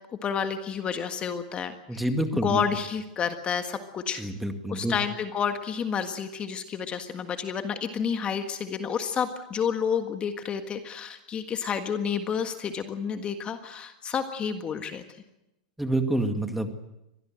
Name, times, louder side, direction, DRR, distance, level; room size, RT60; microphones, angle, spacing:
voice 1, 0.2-2.0 2.3-4.2 4.7-15.0, left 7 dB, 25° left, 7 dB, 1.7 m, -30 dB
voice 2, 1.9-2.6 4.2-4.9 15.8-16.8, right 1 dB, 5° right, 6 dB, 2.2 m, -27 dB
24.5 x 18.5 x 7.8 m, 0.91 s
hypercardioid pair, 130°, 4 cm